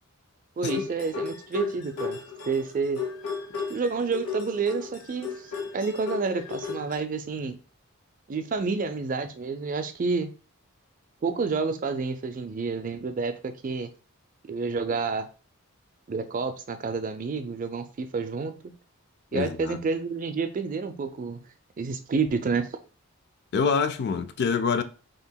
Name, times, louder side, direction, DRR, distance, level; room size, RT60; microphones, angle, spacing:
sound 1, 0.6-7.0, left 5 dB, 75° left, 0.9 m, -34 dB
voice 1, 0.6-2.2 2.5-3.0 3.7-7.6 8.3-10.3 11.2-13.9 14.5-15.3 16.1-18.7 19.3-21.4 21.8-22.7, right 4 dB, 40° right, 0.4 m, -29 dB
voice 2, 19.3-19.8 23.5-24.8, left 5 dB, 50° left, 0.4 m, -26 dB
5.5 x 2.8 x 2.2 m
head